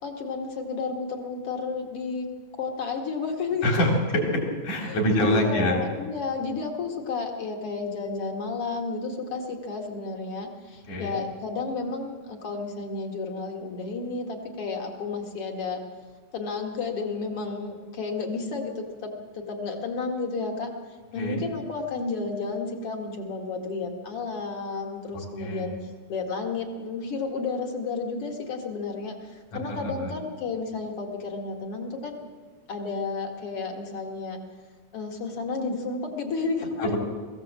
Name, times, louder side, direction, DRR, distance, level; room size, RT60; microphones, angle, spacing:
voice 1, 0.0-2.3 2.6-3.7 4.9-15.8 16.3-20.7 21.1-32.3 32.7-34.4 34.9-37.0, left 4 dB, 45° left, 3 dB, 2.7 m, -32 dB
voice 2, 3.6-5.8 10.9-11.2 21.2-21.4 25.1-25.8 29.5-30.1 36.8-37.0, equal, 65° left, 0 dB, 5.2 m, -26 dB
22.0 x 16.0 x 7.5 m, 1.5 s
omnidirectional pair, 3.8 m